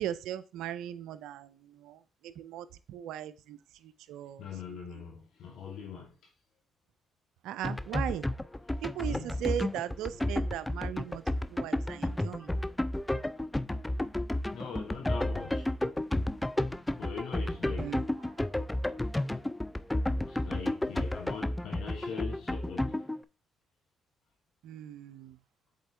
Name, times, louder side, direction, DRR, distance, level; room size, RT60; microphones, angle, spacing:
voice 1, 0.0-5.0 7.4-8.3 8.8-11.2 11.5-12.5 17.8-18.6 24.6-25.4, right 11 dB, 80° right, 0.4 m, -38 dB
voice 2, 4.4-6.1 9.0-9.3 14.5-15.7 17.0-17.9 20.2-23.0, left 6 dB, 75° left, 1.9 m, -41 dB
sound 1, 7.6-23.2, left 1 dB, 10° left, 0.4 m, -32 dB
7.5 x 4.4 x 3.4 m
supercardioid pair, 60°, 0 cm